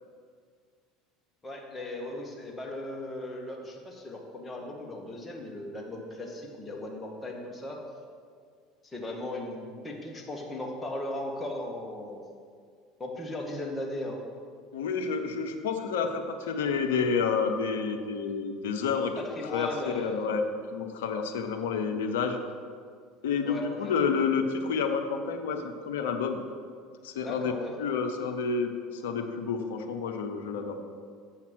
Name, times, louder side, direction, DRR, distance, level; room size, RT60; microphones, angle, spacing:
voice 1, 1.4-7.8 8.8-12.2 13.0-14.2 19.2-20.3 23.5-24.0 27.2-27.7, left 1 dB, 15° left, -1 dB, 1.8 m, -37 dB
voice 2, 14.7-19.1 19.5-19.7 20.0-20.4 20.7-22.4 23.2-26.4 27.0-27.5 27.8-30.8, left 5 dB, 75° left, 5 dB, 0.8 m, -29 dB
8.0 x 5.8 x 6.2 m, 2.1 s
hypercardioid pair, 75°, 0 cm